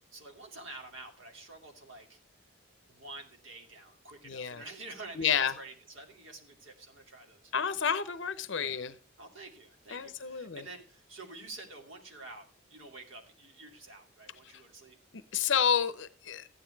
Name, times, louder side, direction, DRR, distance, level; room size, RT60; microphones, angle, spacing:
voice 1, 0.1-2.2 2.9-7.5 8.6-8.8 9.2-15.0, right 2 dB, 65° right, 3 dB, 2.7 m, -48 dB
voice 2, 4.2-4.6 5.2-5.5 7.5-8.9 9.9-10.6 15.3-16.5, left 7 dB, 55° left, 13 dB, 0.6 m, -30 dB
14.0 x 9.4 x 4.5 m, 0.35 s
head